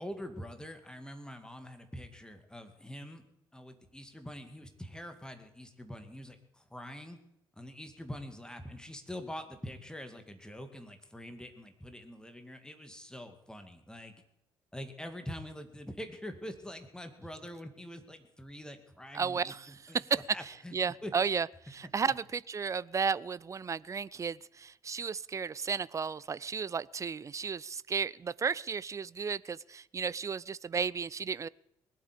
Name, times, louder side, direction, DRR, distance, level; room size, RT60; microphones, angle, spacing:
voice 1, 0.0-3.2 3.5-7.2 7.5-14.1 14.7-20.7 21.0-21.1 22.0-22.1, equal, 5° left, 7 dB, 2.3 m, -45 dB
voice 2, 19.1-20.2 20.7-31.5, right 6 dB, 25° right, 21 dB, 0.5 m, -33 dB
20.0 x 8.5 x 8.6 m, 0.78 s
figure-of-eight pair, 50°, 12 cm